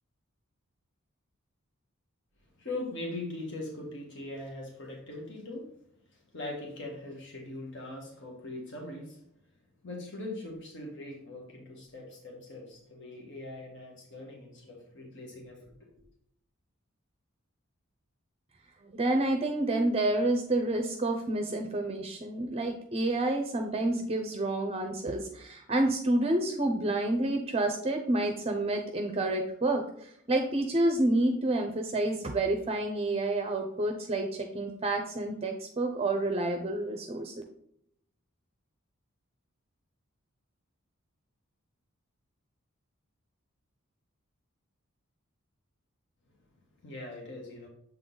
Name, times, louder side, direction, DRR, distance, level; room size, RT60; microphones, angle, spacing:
voice 1, 2.6-5.7 6.3-9.2 9.8-15.7 46.8-47.7, left 2 dB, 55° left, -1 dB, 1.5 m, -41 dB
voice 2, 18.8-37.4, right 2 dB, 30° right, 4 dB, 0.6 m, -29 dB
7.5 x 3.9 x 3.8 m, 0.72 s
head